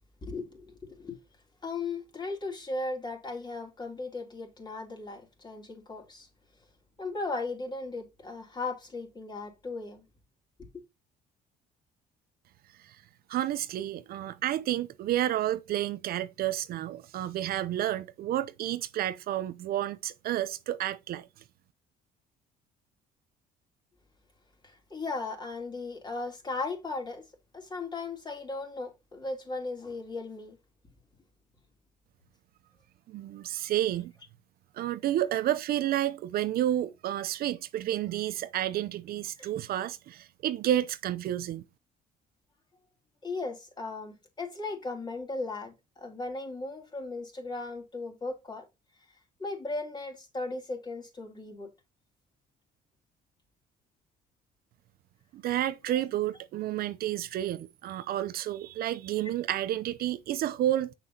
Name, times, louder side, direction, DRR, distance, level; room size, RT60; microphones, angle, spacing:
voice 1, 0.2-1.2 1.6-6.3 7.0-10.0 10.7-10.8 24.6-27.2 27.5-30.6 39.4-39.5 43.2-48.6 49.4-51.7, left 3 dB, 25° left, 3.2 m, -37 dB
voice 2, 13.3-21.3 33.1-34.1 34.7-41.6 55.3-60.9, right 12 dB, 65° right, 0.6 m, -30 dB
7.6 x 6.5 x 2.8 m
cardioid pair, 110°, 17 cm